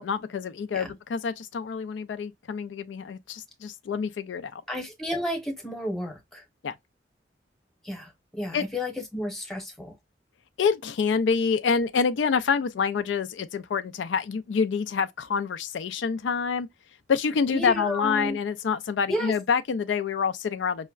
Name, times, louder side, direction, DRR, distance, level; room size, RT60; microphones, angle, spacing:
voice 1, 0.0-4.6 6.6-6.7 8.5-8.6 10.6-16.7 17.1-20.9, left 6 dB, 80° left, 0.4 m, -27 dB
voice 2, 4.7-6.4 7.8-9.9 17.5-18.4 19.1-19.3, left 1 dB, ahead, 0.9 m, -32 dB
5.4 x 2.1 x 2.3 m
head